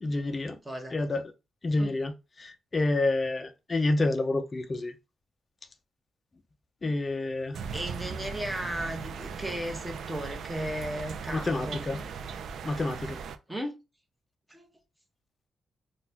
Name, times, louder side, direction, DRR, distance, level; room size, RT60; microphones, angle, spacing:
voice 1, 0.0-0.6 0.9-1.3 1.6-4.9 6.8-7.6 11.3-12.0 12.6-13.2, left 2 dB, 30° left, 0.4 m, -28 dB
voice 2, 0.6-1.0 1.8-1.9 7.7-11.8 13.5-13.8 14.5-14.7, right 1 dB, 10° right, 0.9 m, -35 dB
sound 1, 7.5-13.4, right 6 dB, 70° right, 0.4 m, -38 dB
3.9 x 2.2 x 2.7 m
cardioid pair, 100°, 0 cm